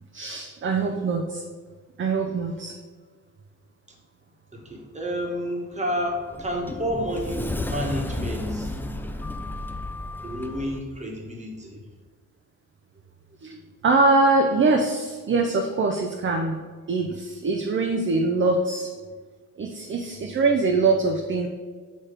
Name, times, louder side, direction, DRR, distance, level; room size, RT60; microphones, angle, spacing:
voice 1, 0.1-1.4 2.0-2.8 13.4-18.9 19.6-21.5, right 3 dB, 40° right, 3 dB, 0.5 m, -23 dB
voice 2, 4.5-8.7 10.2-11.8, equal, 25° right, -1 dB, 1.3 m, -30 dB
Sliding door, 6.0-10.8, left 2 dB, 5° left, 0.3 m, -32 dB
6.6 x 3.1 x 5.0 m, 1.5 s
cardioid pair, 105°, 30 cm